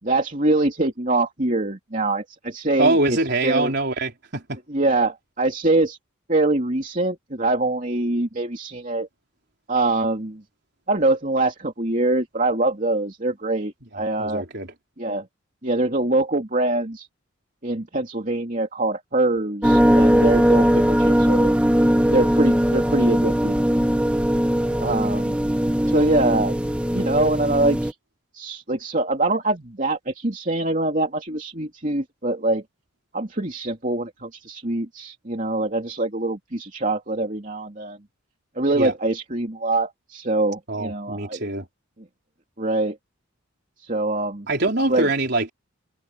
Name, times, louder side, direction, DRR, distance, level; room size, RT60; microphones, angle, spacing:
voice 1, 0.0-3.2 3.4-3.7 4.7-6.0 6.3-9.1 9.7-10.4 10.9-14.4 15.0-15.3 15.6-17.1 17.6-21.5 22.1-23.7 24.8-25.4 25.9-26.6 26.9-27.9 28.3-32.6 33.1-38.0 38.6-41.4 42.6-43.0 43.8-44.5 44.9-45.1, right 2 dB, 35° right, 2.9 m, -24 dB
voice 2, 2.8-4.6 14.2-14.7 38.7-38.9 40.7-41.7 44.5-45.5, right 2 dB, 50° right, 4.0 m, -23 dB
sound 1, 19.6-27.9, equal, 5° right, 1.0 m, -19 dB
open air
head